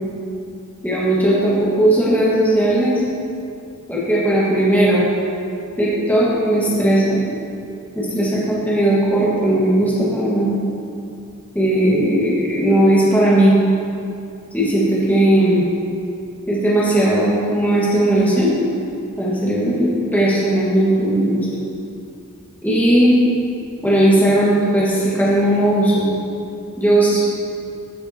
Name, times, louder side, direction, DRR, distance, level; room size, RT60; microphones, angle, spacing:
voice 1, 0.8-3.0 3.9-5.1 5.8-7.2 8.0-10.6 11.5-13.5 14.5-15.6 16.5-18.5 19.2-21.5 22.6-23.1 23.8-26.0 26.8-27.3, right 1 dB, 10° left, -9 dB, 2.1 m, -17 dB
16.0 x 7.1 x 3.1 m, 2.6 s
head